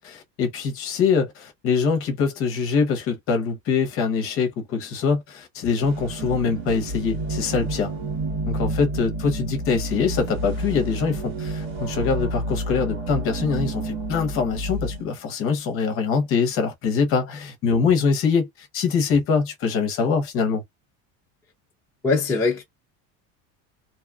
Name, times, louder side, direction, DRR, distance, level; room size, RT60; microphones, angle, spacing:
voice 1, 0.0-7.9 8.5-20.6, left 5 dB, 40° left, 0.8 m, -23 dB
sound 1, 5.8-15.0, right 2 dB, 65° right, 1.6 m, -30 dB
voice 2, 22.0-22.6, left 4 dB, 10° left, 0.6 m, -21 dB
2.7 x 2.3 x 2.3 m
cardioid pair, 180°, 34 cm